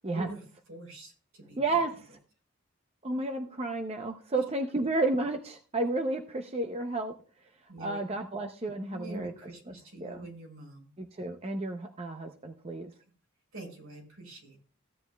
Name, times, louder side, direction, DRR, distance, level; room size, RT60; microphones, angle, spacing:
voice 1, 0.1-0.4 0.7-1.8 4.3-4.4 7.7-8.0 8.9-10.9 13.5-14.6, right 1 dB, 80° right, 1 dB, 4.8 m, -45 dB
voice 2, 1.6-2.1 3.0-7.1 7.8-9.3 10.0-10.3 11.0-12.9, right 2 dB, 30° right, 5 dB, 0.6 m, -32 dB
15.5 x 9.5 x 2.3 m, 0.39 s
head